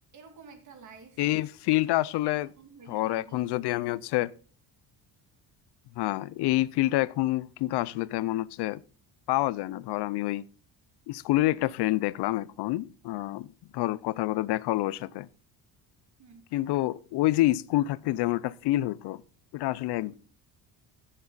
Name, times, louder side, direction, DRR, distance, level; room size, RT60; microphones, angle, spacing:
voice 1, 0.1-1.2 2.2-3.5 14.7-14.8 16.2-16.5, right 4 dB, 45° right, 2.2 m, -50 dB
voice 2, 1.2-2.5 2.9-4.3 6.0-8.8 9.3-10.5 11.1-13.5 13.7-15.3 16.5-19.2 19.5-20.1, left 17 dB, 75° left, 0.6 m, -27 dB
15.0 x 7.5 x 4.0 m
cardioid pair, 175°, 41 cm